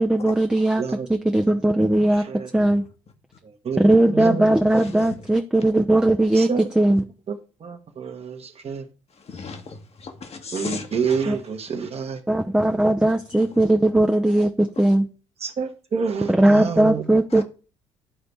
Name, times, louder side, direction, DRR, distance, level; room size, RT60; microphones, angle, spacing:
voice 1, 0.0-0.8 1.1-2.2 2.5-2.8 3.8-6.5 6.8-7.0 11.3-11.4 12.3-15.0 16.3-17.4, right 1 dB, 5° right, 0.6 m, -18 dB
voice 2, 2.1-2.5 3.4-3.8 4.1-4.5 6.3-6.7 7.3-7.4 7.6-8.9 10.5-12.2 15.4-17.0, right 5 dB, 40° right, 1.2 m, -28 dB
voice 3, 4.6-5.3 9.1-11.2 13.3-13.6 14.7-14.8 17.3-17.4, left 4 dB, 40° left, 1.2 m, -37 dB
11.0 x 3.9 x 3.4 m
figure-of-eight pair, 50°, 16 cm